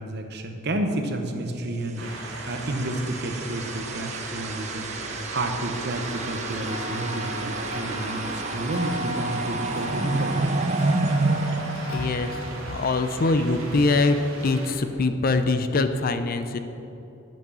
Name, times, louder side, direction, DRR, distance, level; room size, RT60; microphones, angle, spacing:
voice 1, 0.0-10.4 14.2-14.3, right 1 dB, 55° right, 5 dB, 0.8 m, -31 dB
sound 1, 2.0-12.7, right 3 dB, 35° right, 0.5 m, -30 dB
sound 2, 2.0-14.7, right 2 dB, 80° right, 1.6 m, -38 dB
Tick-tock, 5.8-13.1, left 1 dB, 80° left, 2.3 m, -36 dB
voice 2, 11.9-12.4 12.7-14.2 14.4-16.6, left 3 dB, 45° left, 9 dB, 0.5 m, -23 dB
8.7 x 6.0 x 6.9 m, 2.9 s
head